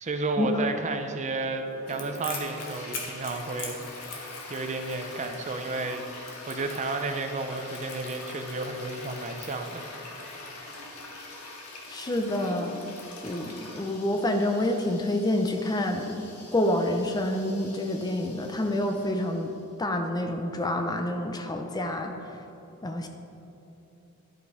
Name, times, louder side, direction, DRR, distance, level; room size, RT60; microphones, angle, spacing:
voice 1, 0.0-3.8 4.5-9.9, right 3 dB, 30° right, 6 dB, 0.6 m, -32 dB
Toilet flush, 1.7-19.6, left 2 dB, 85° left, 1.5 m, -44 dB
Crackle, 1.9-10.2, left 5 dB, 60° left, 1.4 m, -43 dB
voice 2, 11.9-12.8 13.2-16.2 16.5-19.5 19.8-22.1 22.8-23.1, left 1 dB, 20° left, 4 dB, 0.5 m, -28 dB
11.5 x 5.2 x 4.8 m, 2.9 s
head